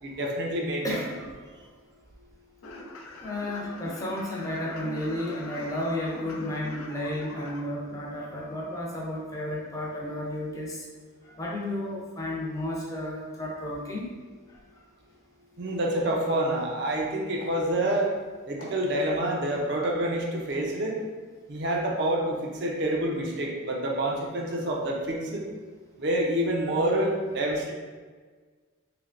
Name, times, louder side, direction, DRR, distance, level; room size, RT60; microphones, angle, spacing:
voice 1, 0.0-0.9 15.6-18.1 18.5-21.0 21.5-25.4 26.0-27.7, right 1 dB, 55° right, -1 dB, 0.5 m, -27 dB
voice 2, 0.8-1.4 3.2-10.8 11.2-14.1 14.5-14.6, left 1 dB, 15° left, -3 dB, 0.4 m, -32 dB
sound 1, 2.6-7.6, left 2 dB, 90° left, 0.4 m, -42 dB
sound 2, 15.1-15.2 15.5-15.8 16.2-16.4 16.7-17.1 17.4-18.2 18.6-19.4 19.8-21.1 21.4-21.6, equal, 65° left, 0.9 m, -47 dB
3.3 x 3.0 x 2.4 m, 1.5 s
head